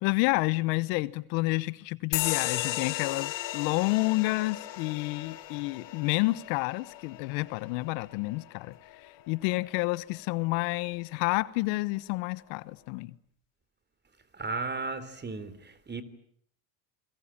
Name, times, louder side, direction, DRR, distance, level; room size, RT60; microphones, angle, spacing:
voice 1, 0.0-8.7 9.3-13.1, left 22 dB, 80° left, 1.2 m, -29 dB
sound 1, 2.1-9.2, left 15 dB, 60° left, 2.6 m, -36 dB
voice 2, 14.3-16.0, right 3 dB, 20° right, 3.5 m, -35 dB
28.5 x 22.0 x 8.8 m
supercardioid pair, 115°, 49 cm